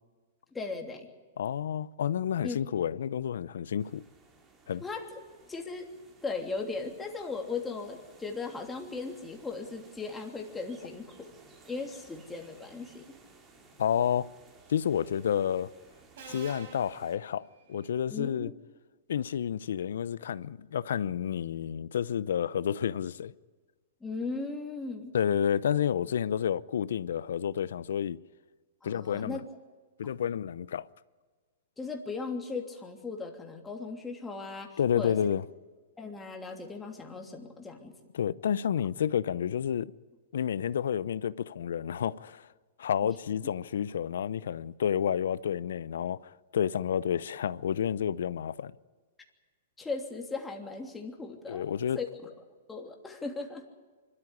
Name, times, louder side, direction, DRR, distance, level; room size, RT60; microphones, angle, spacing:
voice 1, 0.5-1.1 2.4-2.6 4.8-5.2 5.5-5.9 6.2-11.3 11.7-13.1 16.3-16.5 18.1-18.5 24.0-25.2 28.8-29.4 30.0-30.1 31.8-35.3 36.0-38.0 43.0-43.1 49.8-51.7 51.9-52.3 52.7-53.7, left 4 dB, 10° left, 3.0 m, -37 dB
voice 2, 1.4-4.0 4.7-4.8 13.8-14.3 14.7-15.7 16.3-18.5 19.1-23.3 25.1-28.2 28.8-29.4 30.0-30.9 34.8-35.4 38.1-39.9 40.3-42.5 42.8-48.7 51.5-52.0, left 9 dB, 75° left, 0.6 m, -30 dB
sound 1, 3.8-17.2, right 3 dB, 20° right, 3.0 m, -58 dB
Subway metro underground, 14.7-15.0 16.2-17.9, right 5 dB, 65° right, 4.4 m, -49 dB
25.0 x 13.0 x 10.0 m
hypercardioid pair, 130°, 0 cm